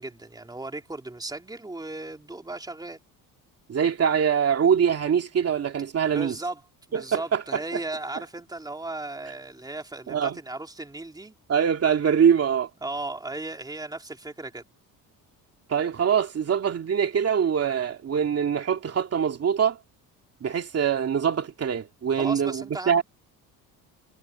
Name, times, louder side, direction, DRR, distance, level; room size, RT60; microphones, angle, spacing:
voice 1, 0.0-3.0 6.1-6.6 6.9-11.4 12.8-14.6 22.2-23.0, right 2 dB, 10° right, 3.3 m, -36 dB
voice 2, 3.7-6.3 6.9-7.8 10.1-10.4 11.5-12.7 15.7-19.8 20.4-23.0, right 7 dB, 40° right, 2.7 m, -23 dB
cardioid pair, 120°, 37 cm